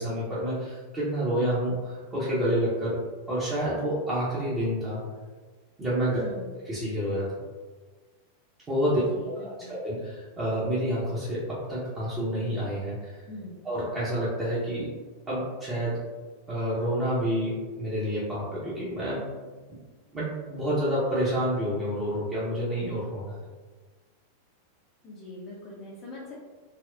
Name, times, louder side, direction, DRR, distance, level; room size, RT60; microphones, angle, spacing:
voice 1, 0.0-3.0 3.3-5.0 5.8-6.2 6.7-7.3 8.7-9.0 9.3-13.2 13.6-14.9 15.3-16.1 16.5-19.2 20.1-23.3, equal, 20° right, -10 dB, 0.9 m, -28 dB
voice 2, 6.2-6.5 8.9-9.7 13.3-13.7 25.0-26.4, left 1 dB, 35° left, -5 dB, 0.6 m, -42 dB
4.1 x 2.0 x 2.6 m, 1.4 s
figure-of-eight pair, 90°, 0 cm